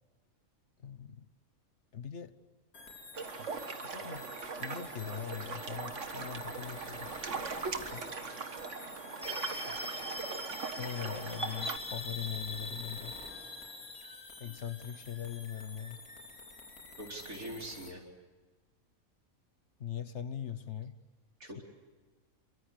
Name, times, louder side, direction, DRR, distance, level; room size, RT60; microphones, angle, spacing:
voice 1, 0.8-1.3 1.9-2.3 3.8-4.2 4.6-7.1 7.7-8.1 10.8-13.2 14.4-16.0 19.8-21.0 21.6-21.7, left 8 dB, 55° left, 12 dB, 1.3 m, -41 dB
sound 1, 2.7-17.9, left 3 dB, 80° left, 3.5 m, -50 dB
sound 2, 3.1-11.8, right 5 dB, 60° right, 1.8 m, -40 dB
sound 3, 9.2-15.5, left 1 dB, 5° right, 2.2 m, -42 dB
voice 2, 17.0-18.0 21.4-21.6, right 1 dB, 75° right, 1 dB, 4.8 m, -43 dB
28.0 x 23.5 x 8.4 m, 1.3 s
omnidirectional pair, 1.5 m